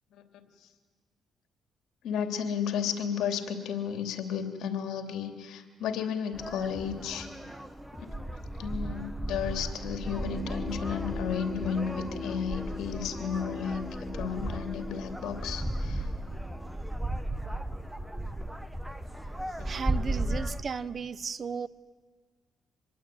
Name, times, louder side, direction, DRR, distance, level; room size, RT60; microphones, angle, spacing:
voice 1, 2.0-7.3 8.0-8.1 8.6-16.0, left 7 dB, 80° left, 6 dB, 3.1 m, -33 dB
sound 1, 6.3-20.6, right 1 dB, 5° right, 1.4 m, -35 dB
sound 2, 10.1-17.5, left 3 dB, 20° left, 1.8 m, -40 dB
voice 2, 19.6-21.7, right 6 dB, 45° right, 18 dB, 1.0 m, -35 dB
26.5 x 21.5 x 9.4 m, 1.5 s
cardioid pair, 90°, 0 cm